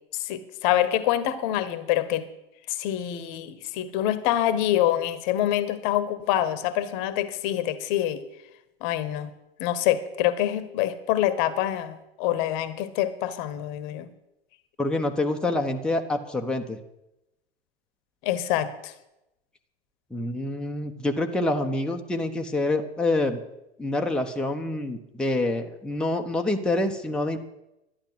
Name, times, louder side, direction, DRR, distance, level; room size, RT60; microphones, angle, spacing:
voice 1, 0.1-2.3 2.7-8.2 8.8-9.3 9.6-14.1 18.2-18.9, left 12 dB, 45° left, 15 dB, 1.3 m, -26 dB
voice 2, 14.8-16.8 20.1-23.4 23.8-27.4, left 2 dB, 5° left, 2 dB, 1.1 m, -26 dB
12.0 x 10.5 x 7.8 m, 0.90 s
figure-of-eight pair, 95°, 32 cm